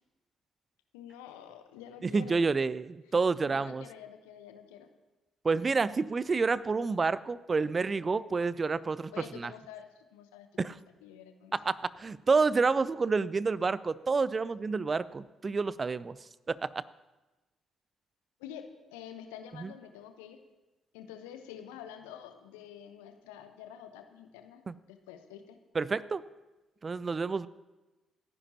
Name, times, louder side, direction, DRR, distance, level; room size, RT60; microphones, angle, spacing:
voice 1, 0.9-2.4 3.4-4.9 9.1-11.5 18.4-20.4 20.9-24.6 24.9-25.6, left 9 dB, 75° left, 8 dB, 0.9 m, -48 dB
voice 2, 2.0-3.8 5.4-9.5 10.6-10.8 11.5-16.2 16.5-16.8 19.6-19.7 24.7-24.8 25.7-26.2 26.8-27.5, right 4 dB, 35° right, 19 dB, 0.4 m, -29 dB
27.5 x 10.0 x 2.9 m, 1.1 s
figure-of-eight pair, 40°, 0 cm